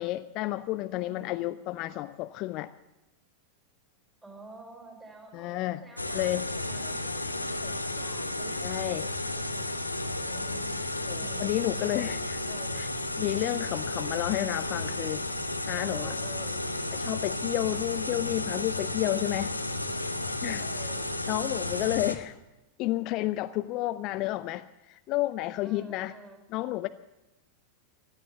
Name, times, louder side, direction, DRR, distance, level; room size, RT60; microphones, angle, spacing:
voice 1, 0.0-2.7 5.3-5.8 6.1-6.5 8.6-9.1 11.0-12.4 12.7-12.9 13.2-15.2 15.7-16.1 16.9-19.5 20.4-20.6 21.3-22.4 22.8-26.1 26.5-26.9, left 17 dB, 40° left, 13 dB, 0.4 m, -31 dB
voice 2, 1.0-1.6 4.2-8.7 9.2-11.7 12.4-12.8 15.7-16.6 20.6-21.1 25.6-26.4, right 3 dB, 10° right, 2 dB, 4.8 m, -50 dB
sound 1, 6.0-22.2, left 2 dB, 85° left, 1.0 m, -33 dB
16.5 x 12.0 x 6.9 m, 1.0 s
figure-of-eight pair, 90°, 0 cm